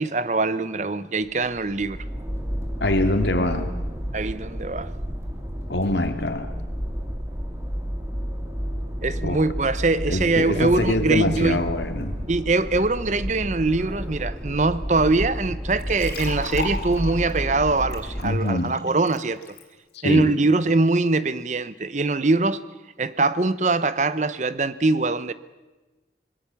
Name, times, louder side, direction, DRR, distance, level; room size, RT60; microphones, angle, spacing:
voice 1, 0.0-2.0 4.1-4.9 9.0-11.6 12.3-19.4 20.0-22.6 23.0-25.3, right 3 dB, 40° right, 0.8 m, -23 dB
sound 1, 1.3-18.5, equal, 15° right, 2.6 m, -31 dB
voice 2, 2.8-3.7 5.7-6.5 9.2-9.4 10.1-12.2 18.2-18.8 19.9-20.3, left 1 dB, 80° left, 2.7 m, -24 dB
sound 2, 15.8-19.6, left 3 dB, 60° left, 4.2 m, -36 dB
25.5 x 21.0 x 7.2 m
head